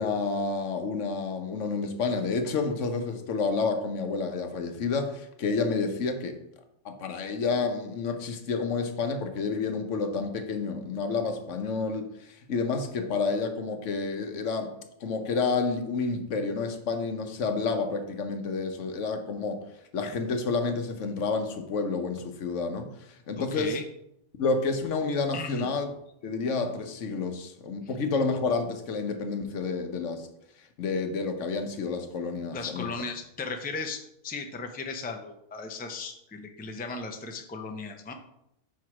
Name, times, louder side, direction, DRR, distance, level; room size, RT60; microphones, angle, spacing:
voice 1, 0.0-6.4 6.8-12.1 12.5-14.8 15.0-19.6 19.9-22.9 23.3-23.8 24.4-25.9 26.2-30.3 30.8-32.9, left 4 dB, 75° left, 1.1 m, -29 dB
voice 2, 23.4-23.8 25.3-25.7 32.5-38.1, left 3 dB, 10° left, 0.4 m, -36 dB
4.7 x 4.7 x 6.0 m
omnidirectional pair, 1.3 m